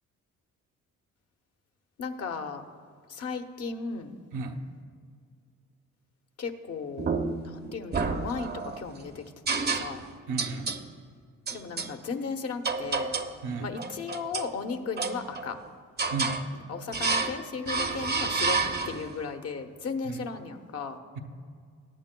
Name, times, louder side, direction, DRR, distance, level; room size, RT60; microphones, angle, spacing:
voice 1, 2.0-2.6 3.1-4.2 6.4-9.2 9.6-10.0 11.5-13.1 13.6-15.6 16.7-18.6 18.8-21.0, left 5 dB, 55° left, 5 dB, 1.0 m, -35 dB
voice 2, 4.3-4.6 10.3-10.7 13.4-13.7 16.1-16.4 20.0-20.3 21.1-21.2, right 4 dB, 75° right, 4 dB, 1.0 m, -34 dB
sound 1, 7.0-7.5 7.9-8.8 9.5-10.1 10.4-10.8 11.5-11.9 12.6-13.4 13.8-14.5 15.0-15.6 16.0-16.4 16.9-17.4 17.7-19.1, right 4 dB, 35° right, 0.7 m, -29 dB
21.0 x 8.8 x 2.3 m, 2.1 s
cardioid pair, 90°, 30 cm